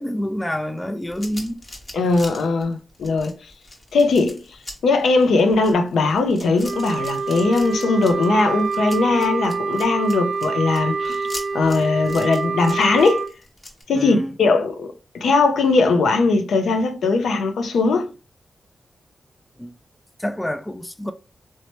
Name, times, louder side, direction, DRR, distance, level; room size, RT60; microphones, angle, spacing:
voice 1, 0.0-1.6 13.9-14.4 19.6-19.8 20.2-21.1, equal, 15° left, 0.3 m, -27 dB
sound 1, 1.1-13.8, left 1 dB, 40° left, 0.9 m, -40 dB
voice 2, 1.9-3.3 3.9-4.4 4.8-11.3 11.5-13.2 13.9-18.1, left 3 dB, 85° left, 0.4 m, -19 dB
Wind instrument woodwind instrument, 6.6-13.3, right 4 dB, 55° right, 0.6 m, -26 dB
3.0 x 2.1 x 2.8 m
cardioid pair, 45°, 0 cm